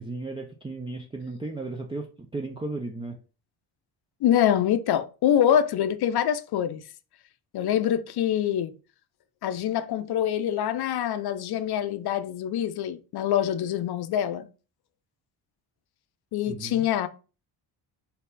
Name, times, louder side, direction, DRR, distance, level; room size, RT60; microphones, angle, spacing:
voice 1, 0.0-3.2 16.5-16.9, right 2 dB, 10° right, 0.5 m, -35 dB
voice 2, 4.2-6.8 7.5-8.7 9.4-14.5 16.3-17.1, left 10 dB, 60° left, 0.6 m, -25 dB
4.2 x 2.8 x 4.0 m
cardioid pair, 105°, 45 cm